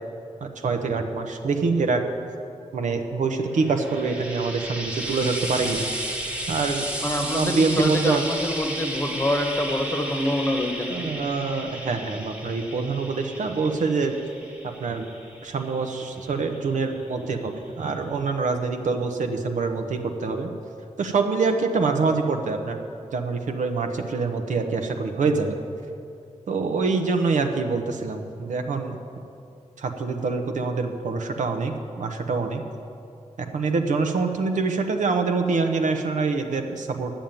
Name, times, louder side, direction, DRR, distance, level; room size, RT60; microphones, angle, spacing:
voice 1, 0.4-2.0 2.7-5.9 6.5-6.9 7.3-8.2 10.9-14.1 14.6-15.1 15.4-20.5 21.0-22.8 23.1-25.6 26.5-28.9 29.8-32.6 33.4-37.1, right 4 dB, 80° right, 5 dB, 1.0 m, -25 dB
Frying (food), 3.5-17.0 17.9-18.0, right 1 dB, 10° right, 1.3 m, -34 dB
voice 2, 7.0-11.1, left 1 dB, 20° left, 4 dB, 1.1 m, -26 dB
10.0 x 7.3 x 9.1 m, 2.5 s
wide cardioid pair, 150°, 13 cm